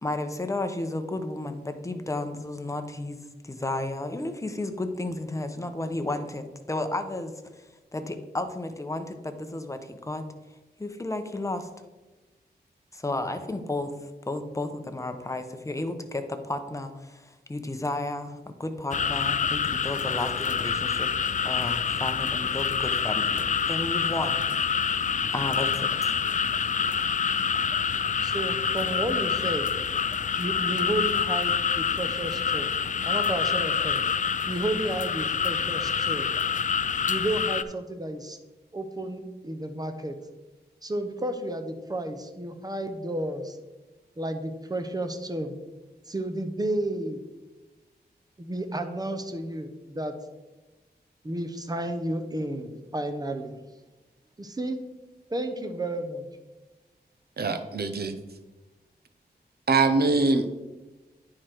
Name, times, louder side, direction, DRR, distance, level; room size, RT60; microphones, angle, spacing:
voice 1, 0.0-10.2 10.8-11.7 12.9-13.9 14.3-21.1 21.4-24.5 24.8-26.2, left 2 dB, 20° left, 7 dB, 0.8 m, -33 dB
sound 1, 18.9-37.6, left 6 dB, 45° left, 0.4 m, -27 dB
voice 2, 27.9-29.7 30.3-32.8 33.0-34.0 34.5-36.3 37.1-38.4 38.7-40.2 40.8-43.6 44.2-45.6 46.1-47.2 48.4-50.1 51.2-53.5 54.4-54.8 55.3-56.2, right 1 dB, 20° right, 7 dB, 0.9 m, -32 dB
voice 3, 57.4-58.1 59.7-60.5, right 3 dB, 65° right, 8 dB, 0.8 m, -23 dB
9.8 x 4.8 x 4.5 m, 1.2 s
wide cardioid pair, 85°, 17 cm